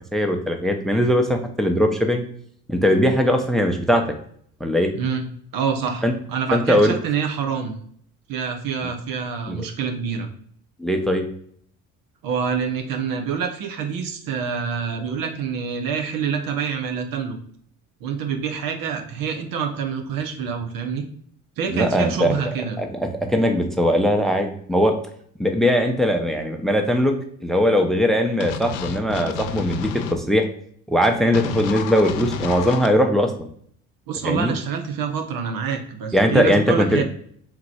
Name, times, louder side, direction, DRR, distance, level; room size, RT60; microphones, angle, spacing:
voice 1, 0.1-2.2 2.7-4.0 4.6-4.9 6.0-6.1 6.5-6.9 9.5-9.6 10.8-11.3 21.7-25.0 25.4-27.1 27.4-30.5 30.9-33.5 34.2-34.5 36.1-37.0, equal, ahead, 5 dB, 0.6 m, -20 dB
voice 2, 4.9-5.3 5.5-7.8 8.3-10.3 12.2-17.4 18.0-21.0 21.6-22.8 34.1-37.0, right 6 dB, 60° right, 4 dB, 0.9 m, -26 dB
sound 1, 28.4-30.1 31.3-32.9, left 7 dB, 85° left, 0.6 m, -30 dB
3.8 x 3.0 x 4.6 m, 0.62 s
hypercardioid pair, 65°, 38 cm